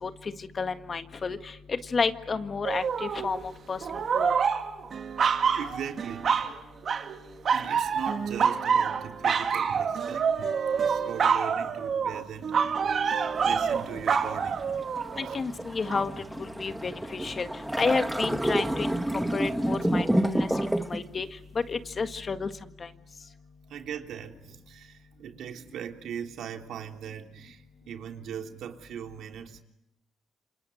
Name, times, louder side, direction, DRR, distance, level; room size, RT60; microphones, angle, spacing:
voice 1, 0.0-3.4 3.7-4.3 15.2-16.1 16.4-17.5 17.8-19.0 19.3-21.3 21.7-22.5 22.8-22.9, left 4 dB, 40° left, 1.8 m, -31 dB
sound 1, 2.6-3.4 3.8-6.5 6.8-7.2 7.4-15.4 15.9-16.0, right 6 dB, 55° right, 2.5 m, -27 dB
voice 2, 5.4-6.3 7.5-14.7 15.2-15.3 23.7-29.6, right 8 dB, 75° right, 3.2 m, -40 dB
sound 2, 13.3-21.0, right 1 dB, 5° right, 1.8 m, -30 dB
28.5 x 26.5 x 7.9 m
cardioid pair, 90°, 0 cm